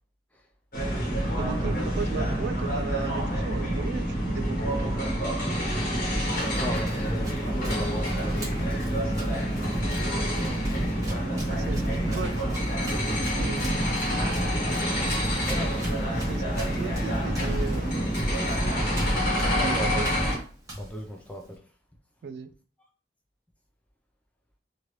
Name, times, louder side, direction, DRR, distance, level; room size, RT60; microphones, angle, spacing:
sound 1, 0.7-20.4, equal, 50° left, 1.1 m, -27 dB
voice 1, 1.4-4.7 11.5-12.5 13.2-13.8 15.9-18.3 19.5-20.1 22.2-22.5, right 5 dB, 75° right, 0.3 m, -36 dB
voice 2, 4.8-5.2 6.2-9.3 10.1-10.6 15.5-16.1 19.6-20.1 20.8-21.6, right 1 dB, 10° left, 0.4 m, -38 dB
Run, 6.3-21.6, equal, 20° right, 1.0 m, -40 dB
3.0 x 2.6 x 3.0 m
head